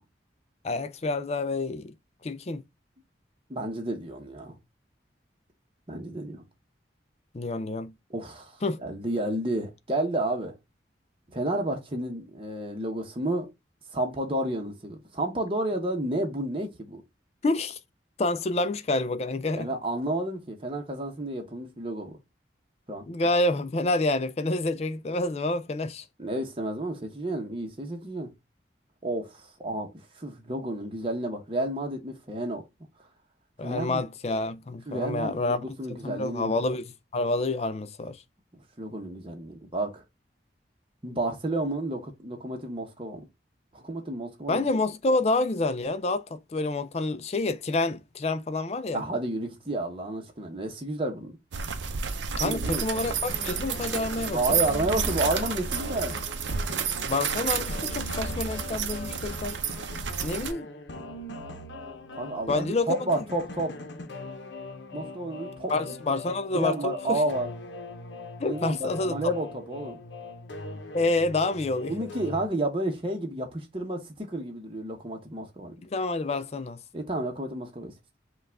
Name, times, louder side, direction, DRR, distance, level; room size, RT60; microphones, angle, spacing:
voice 1, 0.6-1.9 2.2-2.6 7.3-7.9 8.6-8.8 17.4-17.8 18.2-19.7 23.1-26.1 33.6-35.6 35.9-38.2 44.5-49.0 52.4-54.6 57.0-59.6 60.2-60.7 62.5-63.0 65.7-67.2 68.4-69.1 70.9-71.9 75.8-76.8, left 2 dB, 35° left, 0.4 m, -28 dB
voice 2, 3.5-4.5 5.9-6.4 8.1-10.5 11.3-13.5 13.9-17.0 19.6-22.2 22.9-23.1 26.2-28.3 29.0-29.9 30.2-32.6 33.6-34.0 34.9-36.6 38.8-40.0 41.0-43.2 43.7-44.6 48.9-51.4 52.4-52.8 54.3-56.2 62.2-63.7 64.9-65.7 66.5-67.5 68.4-70.0 71.9-75.8 76.9-77.9, right 1 dB, 30° right, 0.9 m, -31 dB
sound 1, 51.5-60.5, right 6 dB, 80° right, 0.6 m, -31 dB
sound 2, 53.0-72.5, left 2 dB, 75° left, 0.7 m, -40 dB
5.4 x 2.4 x 3.5 m
head